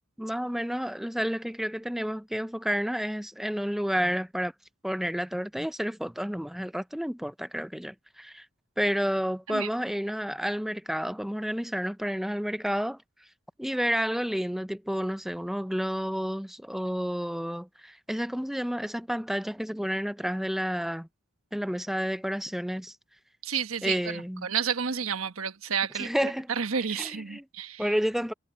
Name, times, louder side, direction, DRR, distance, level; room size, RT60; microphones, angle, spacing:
voice 1, 0.2-4.5 4.8-8.5 8.8-13.0 13.6-21.1 21.5-23.0 23.8-24.5 25.9-26.5 27.0-27.4 27.8-28.3, equal, ahead, 0.5 m, -30 dB
voice 2, 23.4-27.9, right 7 dB, 90° right, 1.2 m, -31 dB
head